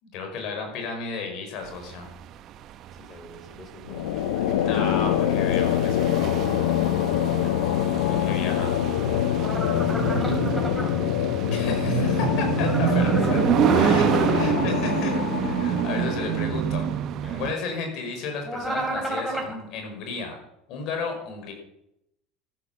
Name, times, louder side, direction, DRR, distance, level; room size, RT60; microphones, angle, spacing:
voice 1, 0.0-2.1 4.6-6.4 8.0-8.7 11.5-13.4 13.7-16.9 17.4-20.4 20.7-21.5, left 4 dB, 60° left, 3 dB, 5.4 m, -33 dB
sound 1, 1.7-17.5, right 10 dB, 50° right, 1.0 m, -27 dB
voice 2, 2.9-4.3 7.1-7.6 9.9-10.8 12.5-14.6 17.2-17.5, left 1 dB, 30° left, 1 dB, 5.6 m, -41 dB
sound 2, 3.9-17.0, left 11 dB, 85° left, 0.8 m, -25 dB
sound 3, 9.4-10.9 12.6-14.4 18.5-19.5, right 1 dB, 5° right, 4.4 m, -32 dB
13.5 x 10.0 x 7.3 m, 0.82 s
supercardioid pair, 105°, 0 cm